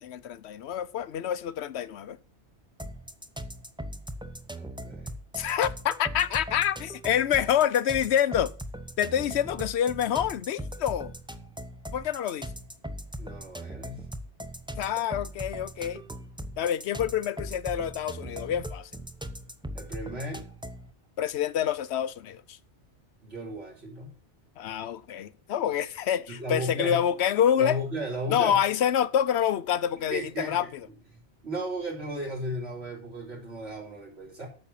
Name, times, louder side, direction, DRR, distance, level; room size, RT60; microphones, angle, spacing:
voice 1, 0.0-2.2 5.3-8.5 9.0-11.1 11.9-12.5 14.8-16.0 16.6-18.9 21.2-22.6 24.6-27.8 28.3-30.7, left 9 dB, 70° left, 0.9 m, -27 dB
sound 1, 2.8-20.9, right 1 dB, 5° right, 0.6 m, -39 dB
voice 2, 4.5-5.2 13.2-14.0 19.7-20.4 23.2-24.1 26.3-27.0 27.6-28.6 30.0-30.7 31.4-34.5, equal, 65° right, 4.6 m, -35 dB
8.9 x 7.0 x 7.3 m
omnidirectional pair, 1.2 m